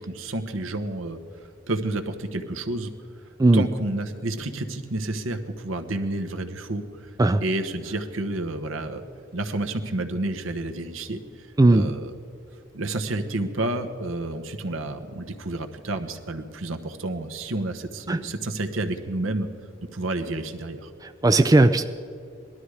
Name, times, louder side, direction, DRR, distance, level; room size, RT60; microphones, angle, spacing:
voice 1, 0.1-2.9 3.5-7.1 7.4-9.0 9.3-11.5 11.7-12.1 12.7-19.5 19.9-20.9, right 2 dB, 80° right, 6 dB, 1.1 m, -30 dB
voice 2, 21.0-21.9, right 2 dB, 20° right, 10 dB, 0.3 m, -17 dB
19.0 x 12.5 x 4.9 m, 2.4 s
head